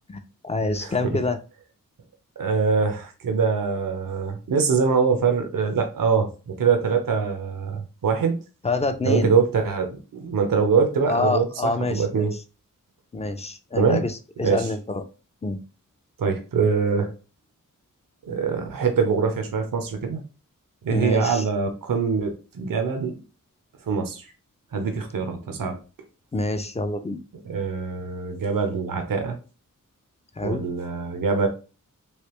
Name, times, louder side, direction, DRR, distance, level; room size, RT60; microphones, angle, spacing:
voice 1, 0.1-1.4 8.6-9.4 11.1-12.4 13.1-15.0 15.4-15.6 20.9-21.4 26.3-27.2 30.4-30.6, left 2 dB, 20° left, 8 dB, 0.4 m, -27 dB
voice 2, 0.8-1.2 2.4-8.4 9.0-12.3 13.8-14.0 14.4-14.7 16.2-17.1 18.3-20.2 20.8-23.1 23.9-24.3 24.7-25.8 27.4-29.4 30.4-31.5, right 5 dB, 75° right, 5 dB, 0.7 m, -23 dB
3.3 x 2.8 x 3.0 m, 0.34 s
wide cardioid pair, 70°, 33 cm